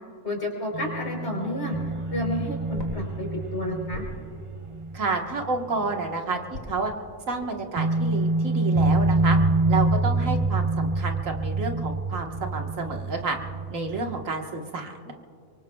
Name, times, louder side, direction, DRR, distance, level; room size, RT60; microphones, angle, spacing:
voice 1, 0.2-1.8 2.1-4.0, left 1 dB, 50° left, 0 dB, 4.3 m, -31 dB
sound 1, 0.7-6.2 6.4-6.6 7.8-14.3, right 2 dB, 50° right, 0.3 m, -26 dB
sound 2, 1.8-5.9 6.5-9.5, left 2 dB, 85° left, 2.2 m, -45 dB
voice 2, 4.9-6.9 7.3-9.4 9.7-13.4 13.7-15.1, right 3 dB, 70° right, 2 dB, 1.8 m, -30 dB
24.5 x 24.0 x 2.3 m, 2.4 s
omnidirectional pair, 1.4 m